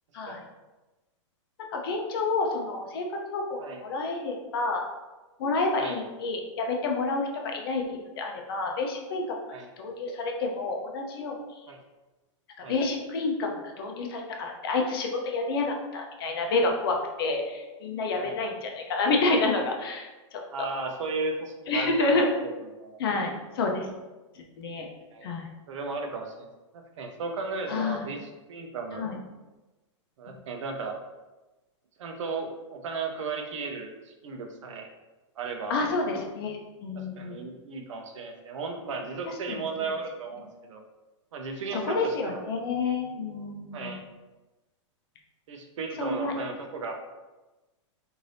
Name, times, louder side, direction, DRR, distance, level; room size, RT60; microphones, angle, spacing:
voice 1, 1.7-4.8 5.4-9.4 9.8-11.6 12.6-20.7 21.7-22.3 23.0-23.9 24.6-24.9 25.2-25.5 27.7-28.1 28.9-29.2 35.7-37.4 39.2-39.9 41.7-43.9 46.0-46.3, left 3 dB, 50° left, 2 dB, 0.5 m, -29 dB
voice 2, 20.5-22.5 22.8-23.0 25.1-25.3 25.7-26.5 26.7-29.1 30.2-30.9 32.0-34.9 35.4-35.7 37.0-40.8 41.3-42.4 43.7-44.0 45.5-47.0, right 4 dB, 75° right, 4 dB, 0.6 m, -35 dB
2.6 x 2.6 x 3.2 m, 1.1 s
supercardioid pair, 170°, 16 cm